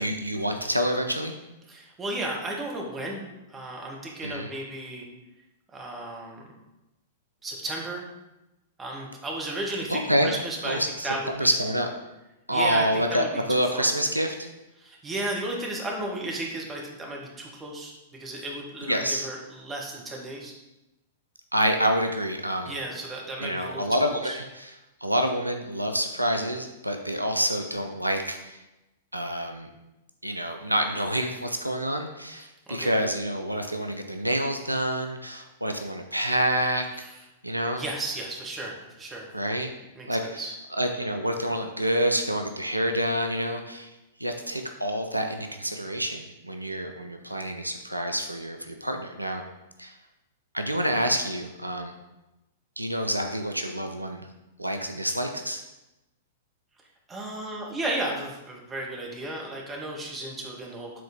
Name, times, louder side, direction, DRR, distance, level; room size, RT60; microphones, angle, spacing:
voice 1, 0.0-1.4 4.2-4.5 9.9-10.3 10.6-11.9 12.5-14.4 18.9-19.3 21.5-22.7 23.4-24.7 25.0-28.6 29.1-29.7 30.2-36.9 37.4-37.8 39.3-39.7 40.1-40.4 40.8-43.9 44.2-49.4 49.8-49.9 50.5-51.9 52.8-54.2 54.6-55.6, equal, 90° right, 5 dB, 0.5 m, -27 dB
voice 2, 1.7-5.1 5.7-6.4 7.4-8.1 8.8-11.5 12.5-13.9 14.8-20.5 22.6-24.4 32.4-32.9 37.0-37.2 37.8-39.3 39.9-40.6 57.1-61.0, right 1 dB, 15° right, -1 dB, 1.3 m, -34 dB
7.6 x 3.8 x 3.6 m, 0.98 s
figure-of-eight pair, 100°, 0 cm